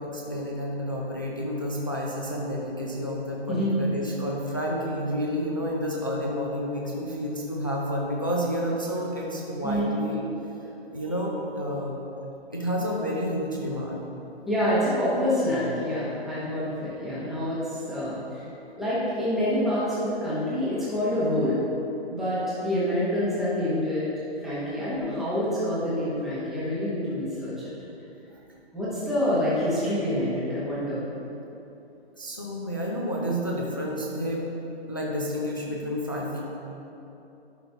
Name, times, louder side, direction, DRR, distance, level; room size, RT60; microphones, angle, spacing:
voice 1, 0.0-10.2 10.9-12.0 12.5-14.0 32.2-34.4 34.9-36.4, equal, 20° left, -3 dB, 0.3 m, -30 dB
voice 2, 14.5-18.4 18.7-21.6 22.1-24.1 24.4-27.7 28.7-31.1, left 1 dB, ahead, -11 dB, 0.8 m, -27 dB
11.5 x 5.7 x 2.7 m, 2.9 s
hypercardioid pair, 160°, 32 cm